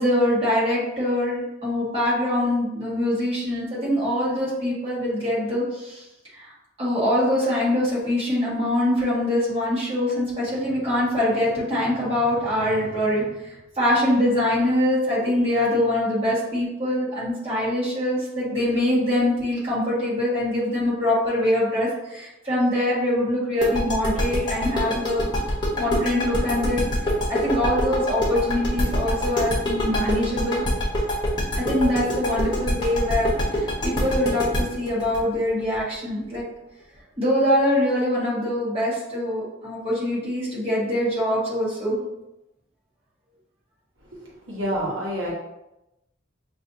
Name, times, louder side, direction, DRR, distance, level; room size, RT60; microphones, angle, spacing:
voice 1, 0.0-6.0 6.3-6.5 6.8-13.3 13.8-25.2 25.7-30.7 31.6-33.3 33.6-36.4 37.2-42.0, left 1 dB, 30° right, -8 dB, 1.5 m, -23 dB
sound 1, 23.6-36.4, left 1 dB, 20° left, 0.9 m, -24 dB
voice 2, 44.0-45.3, equal, 80° right, -5 dB, 1.1 m, -29 dB
6.3 x 2.6 x 2.7 m, 0.92 s
head